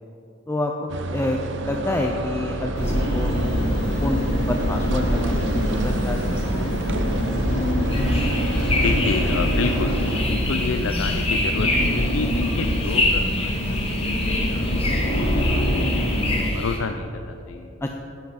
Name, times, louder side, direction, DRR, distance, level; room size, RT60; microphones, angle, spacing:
voice 1, 0.5-3.3 4.0-4.2 4.5-6.8 17.8-17.9, left 1 dB, 15° left, 2 dB, 0.5 m, -28 dB
sound 1, 0.9-10.2, right 2 dB, 65° right, 0.6 m, -31 dB
sound 2, 2.7-16.4, equal, 60° left, 1.9 m, -24 dB
sound 3, 7.9-16.8, left 2 dB, 30° left, 1.5 m, -28 dB
voice 2, 8.8-9.9 10.2-11.7 11.9-16.1 16.5-17.7, left 4 dB, 85° left, 7 dB, 0.5 m, -30 dB
11.5 x 10.0 x 4.1 m, 3.0 s
head